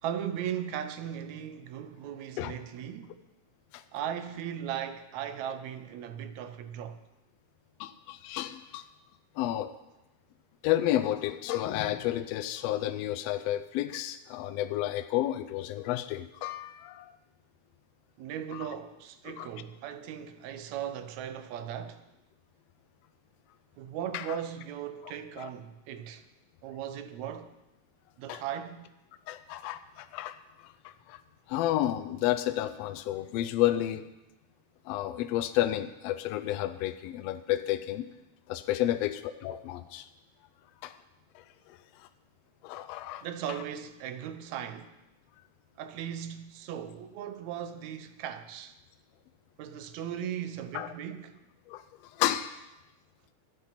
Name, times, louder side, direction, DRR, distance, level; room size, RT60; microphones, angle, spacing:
voice 1, 0.0-3.1 3.9-7.0 18.2-22.0 23.8-26.2 26.6-27.5 28.2-28.8 43.2-44.9 45.8-48.8 49.6-51.4, right 9 dB, 75° right, 1.9 m, -37 dB
voice 2, 7.8-8.8 9.4-9.7 10.6-17.1 18.5-18.7 19.3-19.5 24.1-24.3 25.4-25.5 28.3-28.4 29.3-30.4 30.8-31.2 31.5-34.1 34.9-38.0 38.5-40.1 40.8-41.0 41.7-42.1 42.6-43.6 50.7-50.9 51.7-51.8 52.2-52.6, left 13 dB, 85° left, 1.4 m, -31 dB
12.5 x 9.1 x 5.8 m
omnidirectional pair, 3.5 m